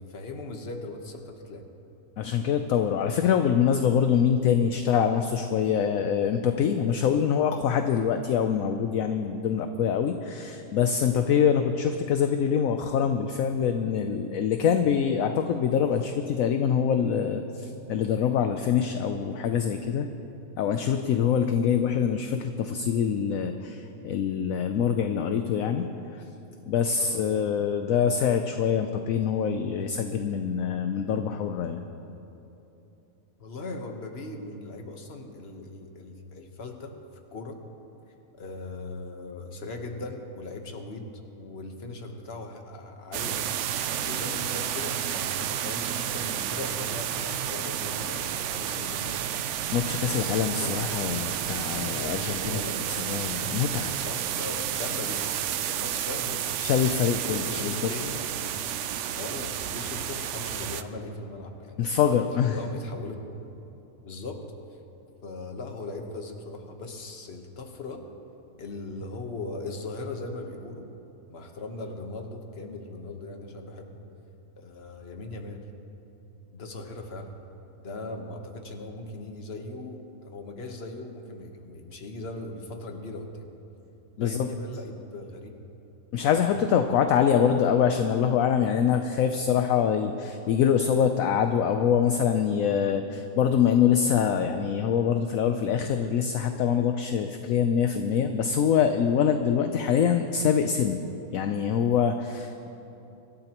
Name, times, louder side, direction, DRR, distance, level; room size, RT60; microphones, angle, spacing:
voice 1, 0.0-1.6 27.0-27.2 33.4-36.9 37.3-37.6 38.3-41.0 41.4-43.6 44.0-49.2 49.9-50.8 51.7-52.8 53.7-55.3 55.6-56.6 57.2-58.1 58.4-58.6 59.1-61.8 62.4-63.3 64.0-64.4 65.2-68.0 68.6-70.9 71.3-74.0 74.6-75.6 76.5-77.3 77.8-83.5 84.2-85.5 86.2-86.5, left 2 dB, 45° left, 3 dB, 1.3 m, -39 dB
voice 2, 2.2-20.1 20.6-26.2 26.7-31.8 49.7-52.6 53.0-53.9 56.6-57.9 61.8-62.6 84.2-84.5 86.1-101.0 101.3-102.7, left 8 dB, 70° left, 6 dB, 1.0 m, -24 dB
sound 1, 43.1-60.8, right 10 dB, 65° right, 0.7 m, -31 dB
25.0 x 13.0 x 3.0 m, 2.9 s
omnidirectional pair, 1.6 m